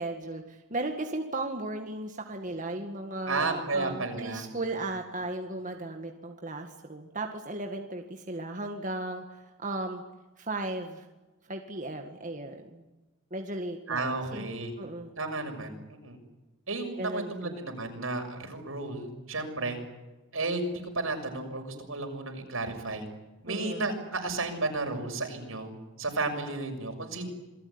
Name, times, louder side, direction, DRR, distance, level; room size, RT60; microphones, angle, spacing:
voice 1, 0.0-10.0 10.4-11.1 11.5-12.8 13.3-14.5 14.8-15.2 17.0-17.6 23.5-23.9, right 2 dB, 40° right, 3 dB, 2.0 m, -36 dB
voice 2, 3.3-4.4 13.9-14.7 15.2-16.2 16.7-19.8 20.3-23.0 23.4-25.7 26.0-27.3, right 3 dB, 80° right, 4 dB, 6.5 m, -33 dB
27.5 x 20.5 x 9.8 m, 1.1 s
head